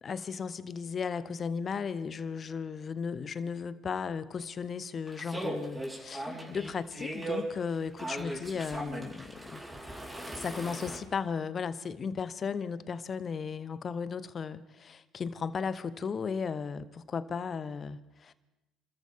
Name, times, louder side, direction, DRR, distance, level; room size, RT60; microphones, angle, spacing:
voice 1, 0.0-9.6 10.3-18.3, left 6 dB, 40° left, 0.9 m, -35 dB
sound 1, 5.1-11.0, right 1 dB, 15° right, 4.3 m, -38 dB
28.5 x 13.5 x 3.7 m
hypercardioid pair, 60°, 0 cm